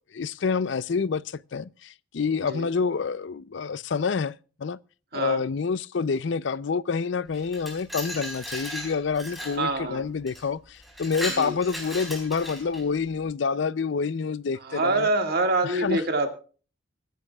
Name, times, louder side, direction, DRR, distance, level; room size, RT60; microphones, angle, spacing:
voice 1, 0.0-4.3 4.6-4.8 5.1-15.1 15.6-16.0, left 5 dB, 60° left, 0.5 m, -28 dB
Glass, 7.3-9.6 10.3-10.4 10.8-12.9, equal, ahead, 4.1 m, -36 dB
voice 2, 9.5-10.1 11.3-11.6 14.6-16.3, right 2 dB, 50° right, 1.9 m, -25 dB
25.0 x 10.5 x 2.3 m
head